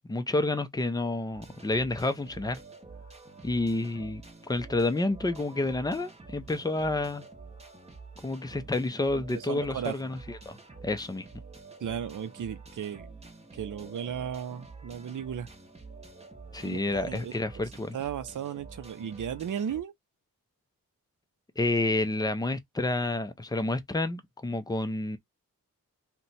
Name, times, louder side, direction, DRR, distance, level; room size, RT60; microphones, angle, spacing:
voice 1, 0.1-2.6 3.4-4.2 4.5-7.2 8.2-10.2 10.5-10.6 10.8-11.3 16.5-18.0 21.6-25.2, left 2 dB, 10° left, 0.4 m, -29 dB
sound 1, 1.3-19.8, right 4 dB, 20° right, 0.7 m, -48 dB
voice 2, 9.1-10.0 11.8-13.1 13.5-15.5 16.6-17.6 17.9-19.9, right 8 dB, 60° right, 0.6 m, -35 dB
2.9 x 2.2 x 3.9 m
wide cardioid pair, 115°, 36 cm